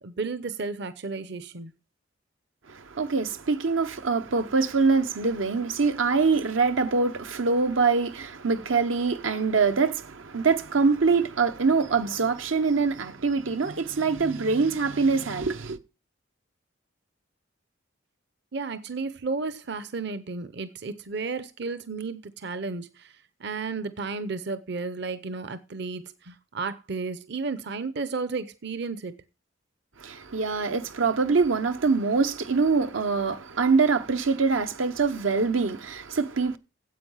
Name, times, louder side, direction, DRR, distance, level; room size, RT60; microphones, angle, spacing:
voice 1, 0.0-1.7 18.5-29.1, right 4 dB, 60° right, 0.7 m, -33 dB
voice 2, 2.7-15.8 30.0-36.6, right 4 dB, 85° right, 0.9 m, -24 dB
9.4 x 8.0 x 5.6 m
head